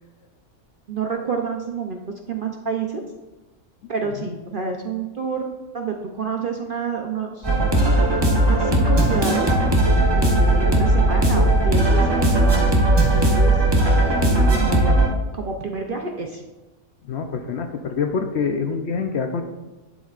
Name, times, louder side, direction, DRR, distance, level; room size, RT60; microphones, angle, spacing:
voice 1, 0.9-2.0 2.3-3.0 3.9-7.6 8.2-9.5 10.1-12.8 13.2-13.6 14.2-14.9 15.3-16.4, right 4 dB, 50° right, 3 dB, 0.6 m, -28 dB
sound 1, 7.4-15.1, right 1 dB, 20° right, 0.9 m, -17 dB
voice 2, 17.1-19.4, left 5 dB, 60° left, 5 dB, 0.8 m, -25 dB
11.5 x 7.2 x 2.4 m, 1.1 s
omnidirectional pair, 1.5 m